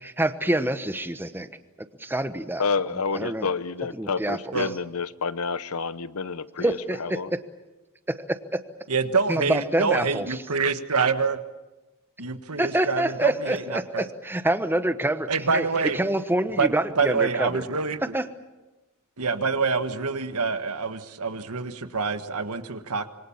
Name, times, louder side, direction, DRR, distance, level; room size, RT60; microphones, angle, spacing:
voice 1, 0.0-1.5 2.0-2.6 3.1-3.5 3.9-4.5 6.6-7.4 8.1-8.6 9.3-10.3 12.6-15.7 15.9-17.6 18.1-18.2, right 1 dB, 10° right, 10 dB, 1.1 m, -26 dB
voice 2, 2.6-7.3, left 4 dB, 70° left, 15 dB, 0.9 m, -29 dB
voice 3, 8.9-11.4 12.2-14.0 15.3-16.0 16.6-16.7 17.0-18.1 19.2-23.1, right 4 dB, 85° right, 9 dB, 1.5 m, -26 dB
26.5 x 23.5 x 7.3 m, 1.1 s
head